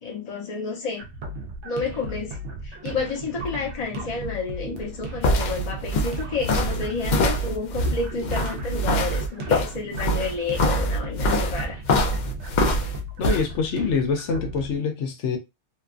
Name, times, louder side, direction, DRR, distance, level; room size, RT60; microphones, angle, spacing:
voice 1, 0.0-1.1 1.6-2.4 2.6-11.8, left 4 dB, 35° left, 0.9 m, -30 dB
sound 1, 1.0-14.8, right 1 dB, 75° right, 0.9 m, -36 dB
sound 2, 4.8-13.4, left 1 dB, 60° left, 0.5 m, -24 dB
voice 2, 13.2-15.4, left 5 dB, 80° left, 1.0 m, -25 dB
2.9 x 2.3 x 2.4 m
omnidirectional pair, 1.2 m